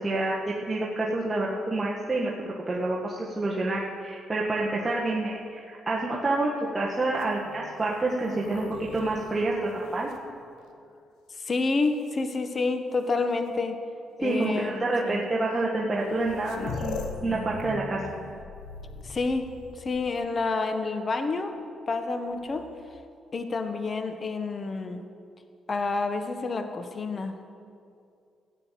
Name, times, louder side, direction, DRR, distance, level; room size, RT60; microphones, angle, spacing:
voice 1, 0.0-10.1 14.2-18.0, right 2 dB, 20° right, -4 dB, 1.6 m, -28 dB
sound 1, 7.1-10.9 11.6-12.4 13.5-13.6 14.3-14.5 15.6-15.7 15.9-20.4 22.3-23.0, left 4 dB, 85° left, 1.0 m, -41 dB
voice 2, 11.4-13.8 14.2-15.2 19.0-19.5 19.8-21.5 21.9-22.7 23.3-25.0 25.7-27.4, left 3 dB, 35° left, 8 dB, 1.1 m, -29 dB
14.0 x 9.0 x 7.5 m, 2.5 s
cardioid pair, 90°, 0 cm